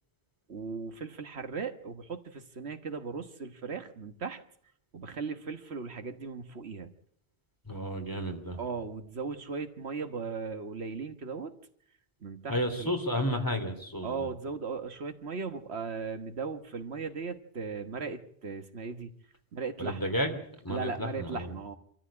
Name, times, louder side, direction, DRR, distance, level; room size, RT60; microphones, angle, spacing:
voice 1, 0.5-4.4 4.9-6.9 8.6-11.5 12.2-12.9 14.0-19.1 19.5-20.2 20.7-21.7, right 5 dB, 80° right, 8 dB, 1.6 m, -37 dB
voice 2, 7.7-8.6 12.5-14.3 19.8-20.4 20.6-21.5, equal, 20° left, 5 dB, 2.9 m, -32 dB
25.5 x 14.0 x 8.7 m, 0.68 s
omnidirectional pair, 1.1 m